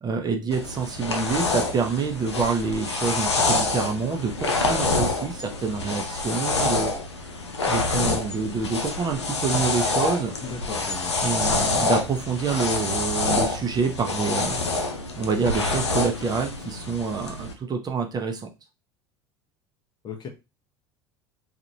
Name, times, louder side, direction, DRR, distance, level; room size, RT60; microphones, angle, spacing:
voice 1, 0.0-6.9 7.7-10.3 11.2-14.6 15.2-18.5, right 5 dB, 30° right, 4 dB, 0.7 m, -27 dB
sound 1, 0.5-17.5, left 3 dB, 90° left, 0.5 m, -27 dB
voice 2, 10.4-11.2 20.0-20.3, left 5 dB, 30° left, 3 dB, 0.8 m, -36 dB
2.9 x 2.5 x 2.7 m, 0.26 s
hypercardioid pair, 70°, 14 cm